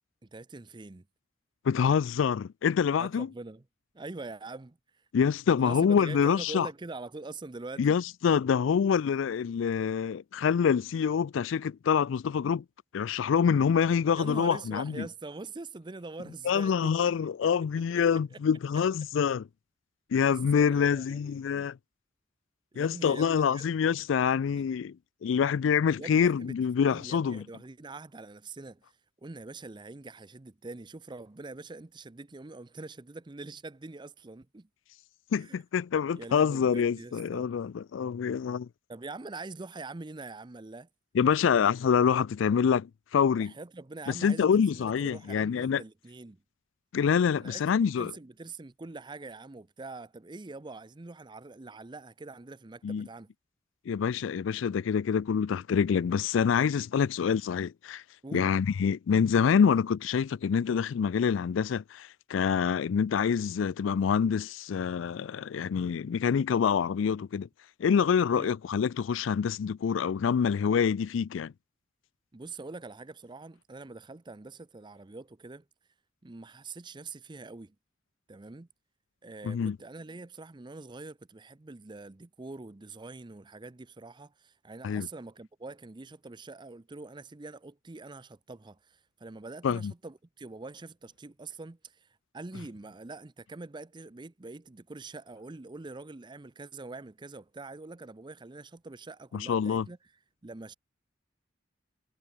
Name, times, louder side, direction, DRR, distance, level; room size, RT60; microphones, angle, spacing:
voice 1, 0.2-1.1 2.9-3.6 3.9-5.1 5.6-8.0 14.2-17.1 17.9-18.0 18.3-18.4 20.1-21.7 22.7-23.6 24.0-24.1 24.5-24.6 26.0-26.6 26.9-34.7 35.4-35.6 36.2-37.5 38.9-40.9 43.4-46.4 47.4-53.3 58.2-58.5 68.3-68.5 72.3-75.6 76.2-77.7 78.3-78.7 79.2-100.0 100.4-100.7, right 3 dB, 25° right, 0.6 m, -44 dB
voice 2, 1.7-3.3 5.1-6.7 7.8-12.6 12.9-14.9 16.4-19.5 20.1-21.8 22.8-24.9 25.2-27.4 35.3-38.7 41.2-43.5 44.1-45.8 46.9-48.1 52.8-53.1 53.9-58.0 58.3-67.5 67.8-71.5 79.4-79.8 84.8-85.1 89.6-89.9 99.3-99.9, left 7 dB, 80° left, 0.4 m, -26 dB
head